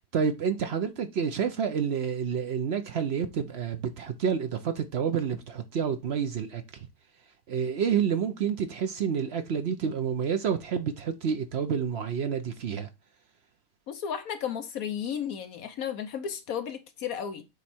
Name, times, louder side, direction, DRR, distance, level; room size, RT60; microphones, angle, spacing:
voice 1, 0.1-6.6 7.5-12.9, right 7 dB, 60° right, 0.7 m, -29 dB
voice 2, 13.9-17.4, left 8 dB, 65° left, 1.1 m, -33 dB
8.0 x 3.1 x 4.3 m
omnidirectional pair, 1.8 m